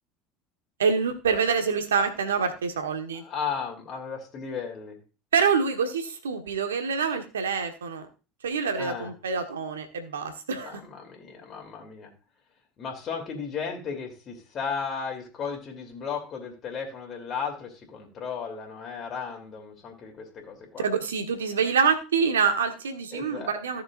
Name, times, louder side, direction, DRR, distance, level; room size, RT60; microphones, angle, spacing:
voice 1, 0.8-3.2 5.3-8.1 8.4-10.8 20.8-23.8, right 5 dB, 85° right, 7 dB, 1.3 m, -26 dB
voice 2, 3.1-5.0 8.8-9.1 10.6-12.1 12.8-20.9 23.1-23.5, left 6 dB, 45° left, 1 dB, 3.1 m, -35 dB
15.5 x 6.6 x 2.5 m, 0.32 s
hypercardioid pair, 75°, 0 cm